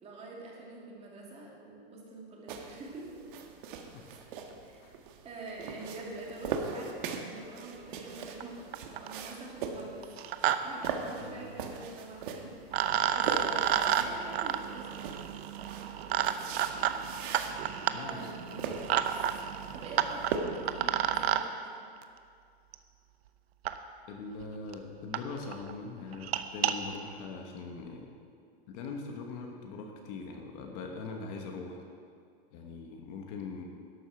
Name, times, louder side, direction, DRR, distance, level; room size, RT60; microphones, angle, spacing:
voice 1, 0.0-3.2 4.6-4.9 5.2-10.0 10.3-12.9 13.1-15.1 15.9-16.0 18.0-18.7 19.7-21.7, right 2 dB, 20° right, -3 dB, 2.3 m, -45 dB
sound 1, 2.5-20.4, right 6 dB, 55° right, 1.4 m, -41 dB
voice 2, 3.9-4.3 4.8-4.9 11.2-11.4 17.9-18.9 24.1-28.1 28.7-31.8 32.5-33.6, left 4 dB, 40° left, 2 dB, 1.3 m, -42 dB
sound 2, 8.4-8.5 8.7-9.2 10.0-10.6 10.8-10.9 12.2-12.3 12.7-21.4 22.7-22.8 23.6-23.7 24.4-24.5 24.7-24.8 25.1-25.2 25.5-25.7 26.1-26.7, right 10 dB, 90° right, 0.9 m, -31 dB
12.0 x 8.2 x 6.4 m, 2.3 s
supercardioid pair, 155°, 30 cm